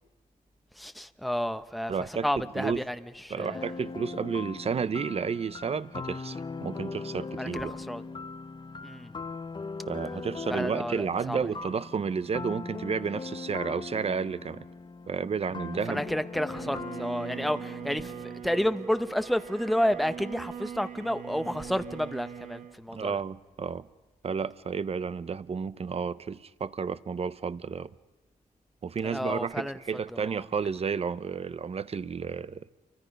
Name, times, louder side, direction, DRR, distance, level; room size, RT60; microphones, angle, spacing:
voice 1, 0.8-3.6 7.4-8.0 8.8-9.1 10.5-11.5 15.9-23.2 29.0-29.8 30.2-30.4, equal, ahead, 0.8 m, -31 dB
voice 2, 1.9-2.8 3.3-7.7 9.9-14.7 15.1-16.0 22.9-23.9 24.2-27.9 28.8-32.7, right 6 dB, 40° right, 0.7 m, -32 dB
sound 1, 3.4-18.4, left 4 dB, 30° left, 0.7 m, -40 dB
Bowed string instrument, 16.5-22.8, right 7 dB, 60° right, 1.3 m, -41 dB
29.0 x 24.0 x 5.3 m
cardioid pair, 90°, 15 cm